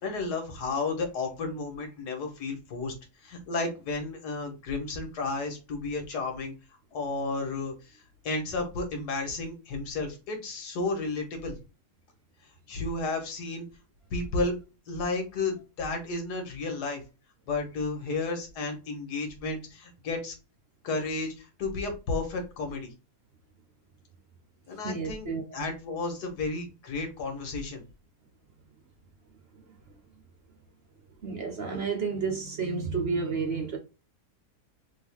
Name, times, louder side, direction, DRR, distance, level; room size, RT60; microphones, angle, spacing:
voice 1, 0.0-2.9 3.2-6.5 6.9-11.6 12.7-13.7 14.1-14.6 14.9-17.0 17.5-20.3 20.8-22.9 24.7-27.8, left 3 dB, 85° left, 1.8 m, -32 dB
voice 2, 24.8-25.7 31.2-33.8, right 4 dB, 50° right, 0.8 m, -31 dB
3.7 x 3.1 x 3.4 m
omnidirectional pair, 1.7 m